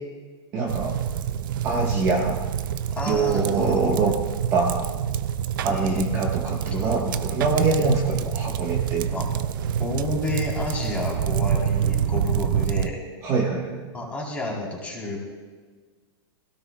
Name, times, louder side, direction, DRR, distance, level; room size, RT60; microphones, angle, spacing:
voice 1, 0.5-1.0 1.5-2.4 3.1-4.1 4.5-4.9 5.6-9.1 13.2-13.9, right 4 dB, 20° right, -2 dB, 1.2 m, -24 dB
sound 1, 0.7-12.9, right 9 dB, 45° right, 0.6 m, -27 dB
voice 2, 2.9-3.9 5.6-6.0 6.7-8.3 9.1-9.3 9.8-13.0 13.9-15.2, left 2 dB, 10° left, -3 dB, 3.5 m, -31 dB
25.5 x 17.0 x 2.3 m, 1.4 s
supercardioid pair, 170°, 15 cm